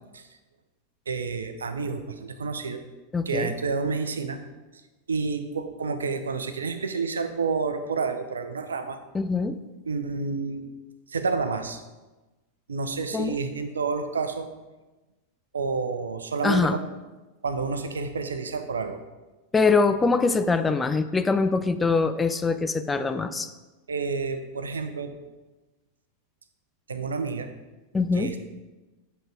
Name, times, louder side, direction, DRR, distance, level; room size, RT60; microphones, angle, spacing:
voice 1, 1.1-2.8 3.3-4.4 5.1-9.0 9.9-10.6 11.1-11.8 12.7-14.5 15.5-16.9 17.4-19.0 23.9-25.1 26.9-27.5 28.1-28.4, right 4 dB, 70° right, 8 dB, 0.7 m, -29 dB
voice 2, 3.1-3.5 9.1-9.6 13.1-13.4 16.4-16.8 19.5-23.5 27.9-28.4, left 4 dB, 10° left, 10 dB, 0.4 m, -23 dB
7.8 x 5.6 x 4.8 m, 1.1 s
figure-of-eight pair, 90°, 0 cm